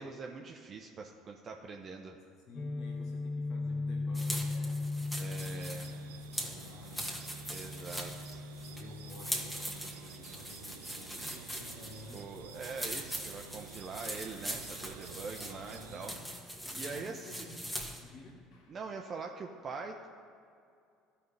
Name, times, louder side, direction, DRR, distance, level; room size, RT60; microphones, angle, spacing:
voice 1, 0.0-2.2 5.2-5.9 7.5-8.4 12.1-16.1 16.7-17.5 18.7-20.1, right 4 dB, 40° right, 2 dB, 0.7 m, -43 dB
voice 2, 2.4-5.7 6.1-8.1 8.6-12.3 15.1-18.8, left 2 dB, 60° left, -2 dB, 1.2 m, -53 dB
Guitar, 2.5-10.4, left 3 dB, 40° left, 1.3 m, -39 dB
sound 1, 4.1-18.1, equal, 5° left, 1.5 m, -42 dB
sound 2, 5.4-16.2, right 8 dB, 80° right, 0.4 m, -51 dB
14.5 x 5.3 x 3.3 m, 2.4 s
hypercardioid pair, 60°, 0 cm